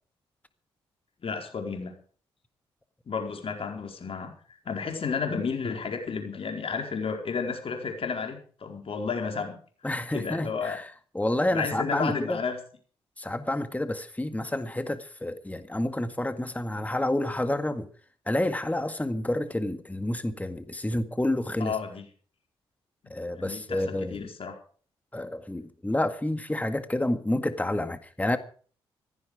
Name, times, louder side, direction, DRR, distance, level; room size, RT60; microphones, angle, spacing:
voice 1, 1.2-1.9 3.1-4.3 4.6-9.6 10.1-10.8 11.5-12.6 21.6-22.0 23.4-24.5, left 5 dB, 55° left, 4.6 m, -32 dB
voice 2, 9.8-12.4 13.2-17.9 18.3-21.8 23.1-24.2 25.1-28.4, left 1 dB, 15° left, 1.9 m, -29 dB
16.0 x 14.5 x 5.0 m
hypercardioid pair, 40°, 12 cm